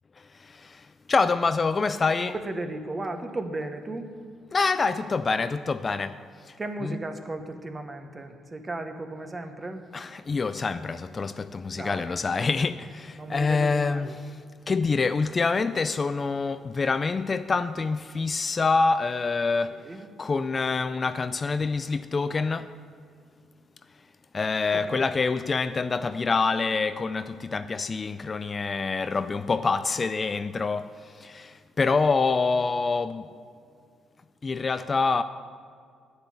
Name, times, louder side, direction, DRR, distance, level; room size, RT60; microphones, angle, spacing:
voice 1, 0.4-2.3 4.5-6.2 6.5-6.6 6.8-7.0 9.9-14.1 14.7-19.8 20.2-22.7 24.3-33.3 34.4-35.2, left 4 dB, 35° left, 0.4 m, -26 dB
voice 2, 2.4-4.1 6.6-9.9 11.7-12.1 13.2-14.1 19.7-20.1 24.7-25.0, right 2 dB, 25° right, 1.1 m, -35 dB
9.7 x 6.9 x 8.1 m
cardioid pair, 90°, 0 cm